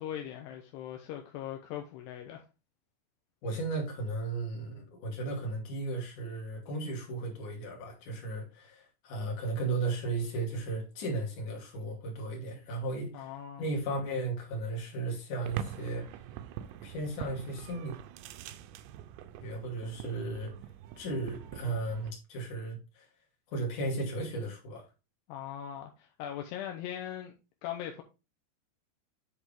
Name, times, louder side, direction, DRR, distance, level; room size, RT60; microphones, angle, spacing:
voice 1, 0.0-2.4 13.1-13.6 25.3-27.3 27.6-28.0, left 10 dB, 80° left, 2.5 m, -40 dB
voice 2, 3.4-13.3 13.6-16.1 16.8-17.9 19.4-20.5 21.0-23.1 23.5-24.9, right 2 dB, 45° left, 3.2 m, -35 dB
sound 1, 15.4-22.1, right 10 dB, 90° right, 2.5 m, -44 dB
10.0 x 4.5 x 3.6 m
omnidirectional pair, 5.8 m